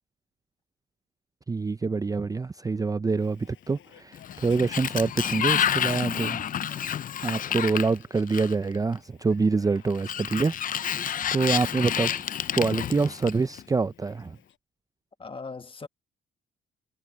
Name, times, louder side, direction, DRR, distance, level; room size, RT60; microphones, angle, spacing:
voice 1, 1.5-6.4 7.2-12.2 12.6-14.4, right 4 dB, 20° right, 0.5 m, -26 dB
sound 1, 3.2-14.6, left 11 dB, 75° left, 7.1 m, -59 dB
Sliding door, 4.1-8.8 9.9-13.6, left 9 dB, 45° left, 0.5 m, -29 dB
voice 2, 10.9-11.3 15.2-15.9, left 4 dB, 25° left, 1.4 m, -40 dB
cardioid pair, 90°, 20 cm